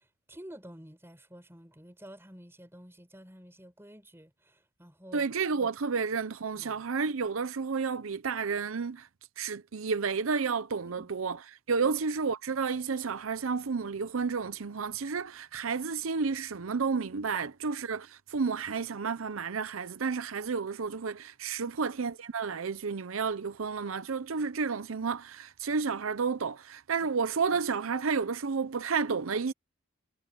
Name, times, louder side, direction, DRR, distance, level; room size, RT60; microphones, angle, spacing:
voice 1, 0.0-5.3 6.6-6.8 10.8-11.1 11.8-11.9 21.6-21.7, equal, 10° right, 4.4 m, -50 dB
voice 2, 5.1-9.1 9.4-11.4 11.7-29.5, right 5 dB, 80° right, 0.7 m, -31 dB
head